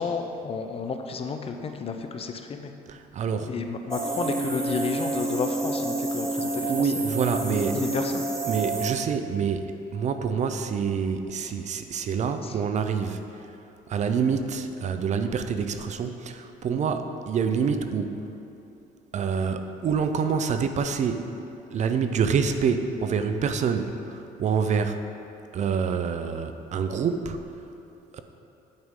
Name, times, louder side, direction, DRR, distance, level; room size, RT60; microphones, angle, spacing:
voice 1, 0.0-2.7 3.5-6.9 7.4-8.2 11.4-11.5 12.4-12.5, left 5 dB, 35° left, 6 dB, 0.6 m, -32 dB
voice 2, 2.9-3.5 6.4-7.8 8.5-13.2 13.9-18.2 19.1-21.3 21.7-25.0 25.5-27.4 28.1-28.2, right 6 dB, 45° right, 8 dB, 0.4 m, -27 dB
sound 1, 3.9-8.9, right 2 dB, 15° right, 0.7 m, -29 dB
8.9 x 5.3 x 3.7 m, 2.8 s
cardioid pair, 110°, 17 cm